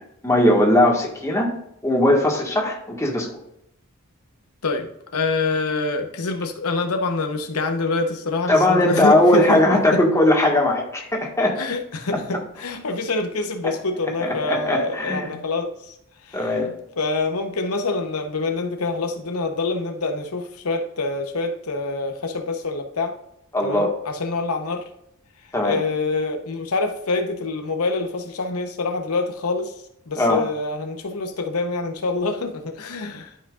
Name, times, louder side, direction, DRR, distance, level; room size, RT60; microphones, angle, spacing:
voice 1, 0.0-1.5 1.8-3.3 8.5-11.6 12.1-12.2 13.6-13.7 14.2-15.3 16.3-16.7 23.5-23.9 25.5-25.8 30.2-30.4, left 1 dB, 15° left, -1 dB, 1.6 m, -19 dB
voice 2, 4.6-10.0 11.6-16.0 16.2-16.5 17.0-23.2 23.6-24.8 25.6-29.8 30.1-33.3, left 3 dB, 80° left, 5 dB, 0.9 m, -26 dB
12.0 x 5.8 x 2.5 m, 0.77 s
head